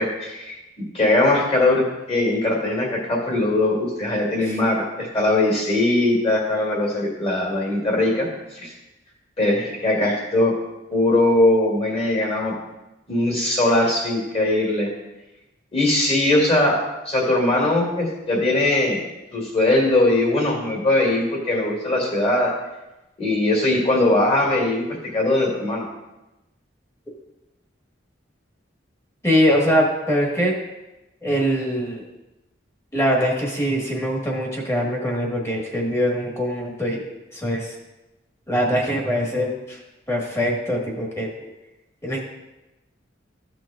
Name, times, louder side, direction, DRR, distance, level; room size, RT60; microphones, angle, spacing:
voice 1, 0.0-8.7 9.4-10.5 10.9-12.5 13.1-14.9 15.7-19.0 19.3-22.5 23.2-25.9, left 2 dB, 35° left, -1 dB, 2.4 m, -20 dB
voice 2, 29.2-30.6 31.2-32.0 32.9-37.7 38.5-39.8 40.1-41.3 42.0-42.2, equal, 15° left, -1 dB, 1.5 m, -23 dB
14.0 x 6.0 x 2.5 m, 1.0 s
head